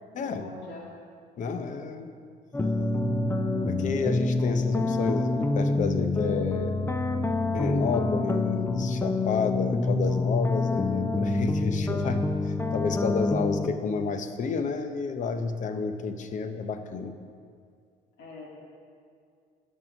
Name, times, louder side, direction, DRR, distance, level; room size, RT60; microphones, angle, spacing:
voice 1, 0.2-0.9 18.2-18.6, left 3 dB, 75° left, -3 dB, 2.1 m, -43 dB
voice 2, 1.4-2.1 3.7-7.1 7.5-17.1, left 5 dB, 50° left, 9 dB, 0.8 m, -31 dB
sound 1, 2.5-13.7, left 2 dB, 15° left, 0.5 m, -26 dB
11.0 x 5.5 x 6.1 m, 2.2 s
cardioid pair, 110°, 17 cm